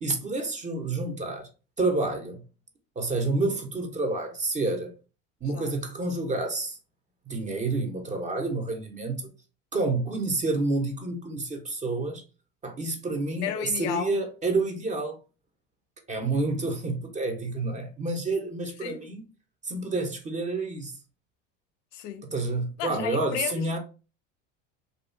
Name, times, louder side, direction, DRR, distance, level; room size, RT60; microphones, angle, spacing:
voice 1, 0.0-1.5 1.8-2.4 3.0-4.9 5.4-6.8 7.3-9.3 9.7-12.2 12.6-15.2 16.1-19.2 19.6-20.9 22.3-23.8, right 3 dB, 20° right, 0.5 m, -29 dB
voice 2, 13.4-14.2 18.8-19.0 21.9-22.3 22.8-23.8, left 9 dB, 75° left, 0.5 m, -33 dB
2.5 x 2.2 x 2.4 m
hypercardioid pair, 95°, 37 cm